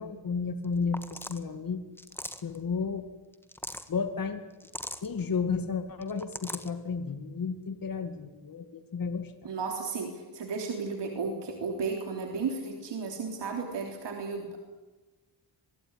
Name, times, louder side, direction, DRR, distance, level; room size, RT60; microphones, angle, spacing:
voice 1, 0.0-1.8 2.4-3.0 3.9-4.4 5.0-9.5, left 5 dB, 55° left, 9 dB, 2.1 m, -32 dB
sound 1, 0.6-0.7 0.9-1.4 2.0-2.6 3.3-3.9 4.6-5.1 6.0-6.7, left 1 dB, 5° left, 1.7 m, -39 dB
voice 2, 9.4-14.6, right 4 dB, 90° right, 2 dB, 3.6 m, -34 dB
24.0 x 21.0 x 9.9 m, 1.2 s
wide cardioid pair, 110°, 41 cm